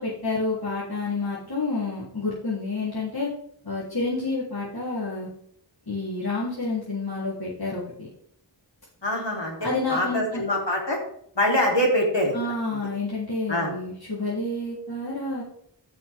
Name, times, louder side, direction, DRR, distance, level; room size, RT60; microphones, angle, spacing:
voice 1, 0.0-3.3 3.6-5.3 5.9-8.1 9.6-10.4 12.3-15.4, left 3 dB, 55° left, -9 dB, 3.5 m, -29 dB
voice 2, 9.0-9.6 9.9-11.0 11.4-12.3 13.5-13.7, left 1 dB, 75° left, -2 dB, 3.6 m, -24 dB
15.5 x 6.2 x 3.6 m, 0.67 s
wide cardioid pair, 45°, 43 cm